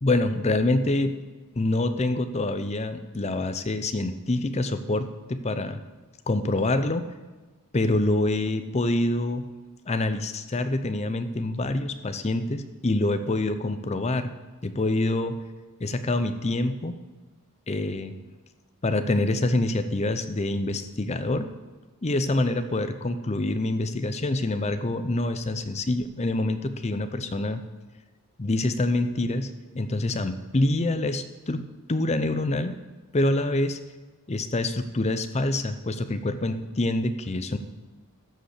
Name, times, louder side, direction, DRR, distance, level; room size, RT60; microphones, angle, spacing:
voice 1, 0.0-1.2 1.6-5.8 6.3-7.0 7.7-9.5 9.9-14.3 14.6-15.4 15.8-17.0 17.7-18.2 18.8-21.5 22.0-27.6 28.4-31.6 31.9-32.8 33.1-33.8 34.3-37.6, left 2 dB, 30° left, 10 dB, 0.6 m, -26 dB
13.5 x 5.3 x 6.6 m, 1.3 s
head